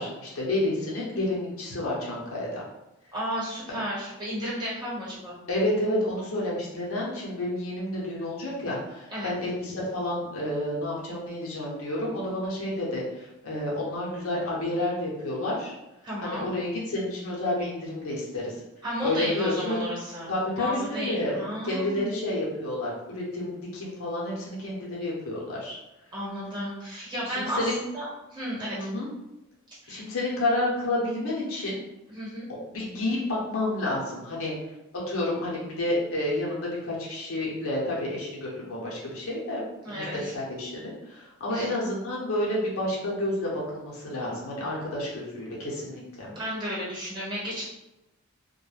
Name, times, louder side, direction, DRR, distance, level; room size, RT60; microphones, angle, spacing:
voice 1, 0.0-2.6 5.5-15.7 16.2-18.6 19.0-19.8 20.3-25.8 27.2-27.8 28.7-29.1 29.9-31.8 32.7-34.7 35.1-40.1 40.3-46.3, left 1 dB, 70° left, -4 dB, 0.7 m, -30 dB
voice 2, 3.1-5.4 9.1-9.3 16.0-16.4 18.8-20.3 20.6-22.1 26.1-27.7 27.9-28.8 29.8-30.0 32.1-32.4 39.8-40.3 41.5-41.7 46.3-47.6, equal, 20° right, -8 dB, 1.1 m, -33 dB
2.2 x 2.1 x 3.1 m, 0.95 s
head